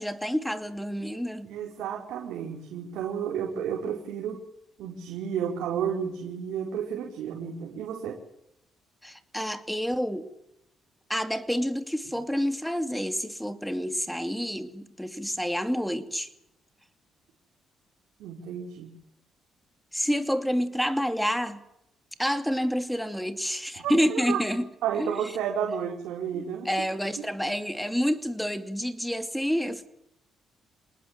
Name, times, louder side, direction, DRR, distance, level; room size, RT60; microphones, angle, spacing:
voice 1, 0.0-1.5 9.0-10.3 11.1-16.3 19.9-21.6 22.2-24.7 25.0-25.3 26.3-29.9, equal, ahead, 8 dB, 2.6 m, -28 dB
voice 2, 1.4-4.4 4.8-8.1 18.2-18.9 23.8-24.4 24.8-26.7 27.2-27.3, right 8 dB, 85° right, -1 dB, 4.7 m, -32 dB
27.0 x 19.5 x 7.5 m, 0.80 s
cardioid pair, 90°, 0 cm